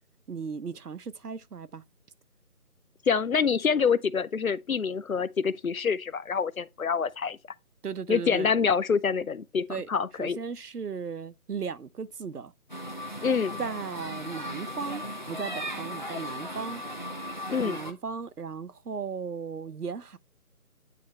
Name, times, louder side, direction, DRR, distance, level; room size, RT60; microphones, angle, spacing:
voice 1, 0.3-1.8 7.8-8.5 9.7-9.9 10.2-12.5 13.6-16.8 17.6-20.2, right 5 dB, 85° right, 0.8 m, -36 dB
voice 2, 3.1-7.4 8.1-10.4 13.2-13.6 17.5-17.8, left 6 dB, 65° left, 0.6 m, -26 dB
sound 1, 12.7-17.9, equal, 30° left, 0.7 m, -37 dB
9.3 x 3.1 x 4.3 m
figure-of-eight pair, 165°, 45 cm